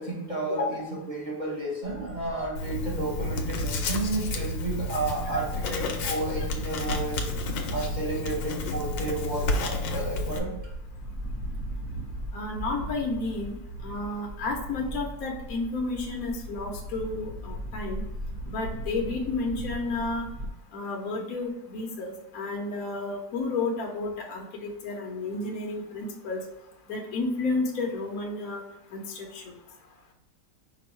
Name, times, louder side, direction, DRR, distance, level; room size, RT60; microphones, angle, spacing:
voice 1, 0.0-7.3 7.7-10.5 21.1-21.2, right 2 dB, 35° right, -3 dB, 0.8 m, -32 dB
sound 1, 1.8-20.5, right 1 dB, 55° right, 1.1 m, -39 dB
Writing, 2.6-10.4, left 2 dB, 80° left, 1.3 m, -31 dB
voice 2, 12.3-18.0 18.5-20.3 20.7-26.4 26.9-28.6 28.9-29.6, left 3 dB, 60° left, 0 dB, 1.0 m, -31 dB
5.3 x 2.3 x 4.3 m, 0.89 s
omnidirectional pair, 2.0 m